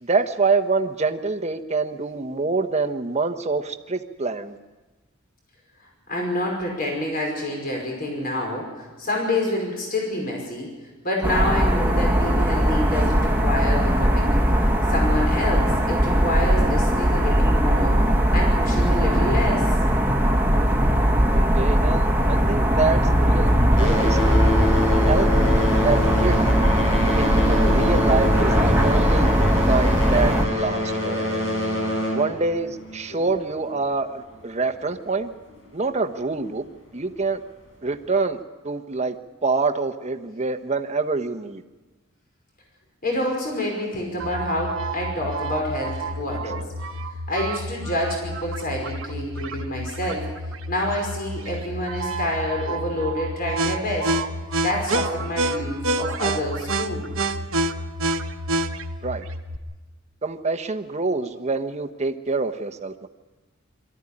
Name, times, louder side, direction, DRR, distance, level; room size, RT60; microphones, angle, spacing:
voice 1, 0.0-4.6 21.3-24.4 25.1-25.3 25.8-26.4 27.1-29.3 29.7-31.4 32.1-35.3 35.7-36.6 36.9-37.4 37.8-39.1 39.4-41.6 59.0-59.2 60.2-63.1, right 3 dB, 35° right, 7 dB, 1.2 m, -26 dB
voice 2, 6.1-10.7 11.0-14.4 14.9-17.9 18.3-19.7 33.1-33.2 43.0-46.6 47.3-50.3 50.7-54.1 54.6-57.1, left 1 dB, 45° left, 0 dB, 5.4 m, -27 dB
sound 1, 11.2-30.5, equal, 10° right, 1.7 m, -19 dB
sound 2, 21.9-23.3 23.6-33.9 34.7-34.8 35.5-35.6 36.2-36.3, left 1 dB, 70° left, 6.2 m, -26 dB
sound 3, 44.2-59.6, right 2 dB, 80° right, 1.4 m, -29 dB
23.0 x 14.0 x 10.0 m, 1.2 s
head